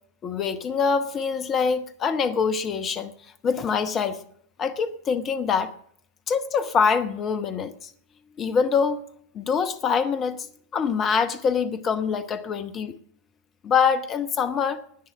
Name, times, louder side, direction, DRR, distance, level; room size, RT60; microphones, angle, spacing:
voice 1, 0.2-3.1 3.4-4.2 4.6-5.7 6.3-7.9 8.4-9.0 9.3-10.5 10.7-13.0 13.6-14.8, left 6 dB, 25° left, 11 dB, 0.9 m, -24 dB
10.5 x 9.6 x 8.9 m, 0.63 s
figure-of-eight pair, 90°, 0 cm